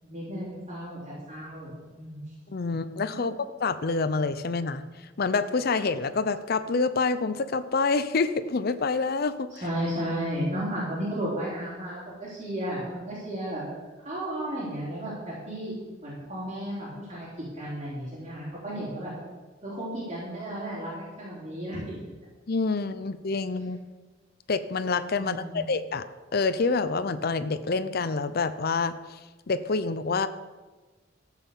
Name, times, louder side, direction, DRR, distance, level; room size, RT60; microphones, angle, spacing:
voice 1, 0.0-2.2 9.5-13.6 14.0-15.7 16.0-17.3 17.5-19.1 19.6-22.0 25.2-25.6, equal, 30° right, -9 dB, 3.9 m, -34 dB
voice 2, 2.5-3.3 3.6-4.8 5.2-9.5 22.5-23.9 24.5-26.0 26.3-29.2 29.5-30.3, left 4 dB, 55° left, 12 dB, 0.6 m, -27 dB
14.0 x 5.8 x 7.3 m, 1.3 s
head